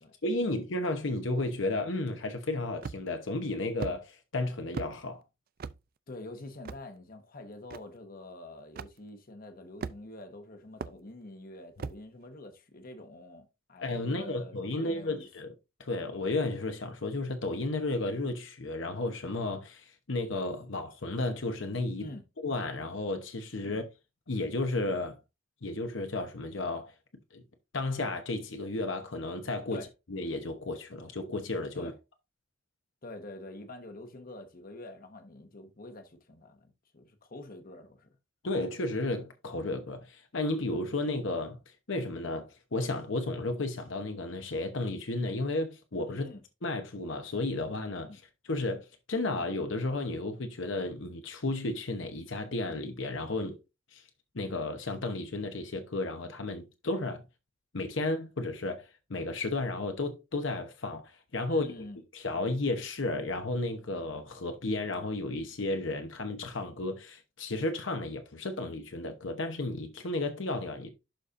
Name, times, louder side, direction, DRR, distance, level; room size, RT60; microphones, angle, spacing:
voice 1, 0.2-5.2 13.8-15.5 15.8-22.1 22.4-23.9 24.3-25.2 25.6-26.9 27.3-27.4 27.7-31.9 38.4-41.6 41.9-46.2 46.6-53.6 53.9-54.0 54.3-57.2 57.7-61.0 61.3-61.7 62.1-70.9, left 2 dB, 65° left, 1.0 m, -33 dB
sound 1, 2.8-3.2 3.8-4.0 4.7-4.9 5.6-5.8 6.7-6.8 7.7-7.8 8.8-8.9 9.8-10.2 10.8-11.0 11.8-12.0, right 5 dB, 45° right, 0.4 m, -38 dB
voice 2, 6.1-15.3 22.0-22.2 29.7-29.9 31.7-31.9 33.0-38.1 46.1-46.4 48.0-48.2 61.5-62.0, left 2 dB, 45° left, 1.1 m, -46 dB
11.5 x 4.2 x 2.5 m
head